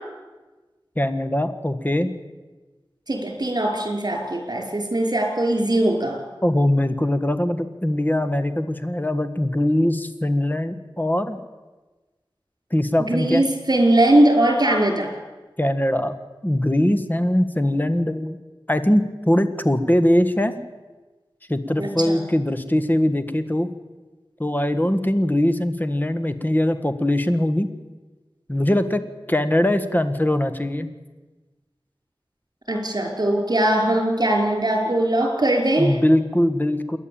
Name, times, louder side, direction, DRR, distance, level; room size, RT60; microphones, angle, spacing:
voice 1, 0.9-2.1 6.4-11.4 12.7-13.5 15.6-16.1 16.4-18.4 18.7-20.5 21.5-23.7 24.4-27.7 28.5-29.0 29.3-30.9 35.8-37.0, left 1 dB, 20° left, 9 dB, 1.6 m, -21 dB
voice 2, 3.1-6.2 13.1-15.1 21.8-22.2 32.7-35.9, right 1 dB, 50° right, 2 dB, 5.5 m, -20 dB
27.5 x 11.0 x 8.9 m, 1.2 s
wide cardioid pair, 45°, 9 cm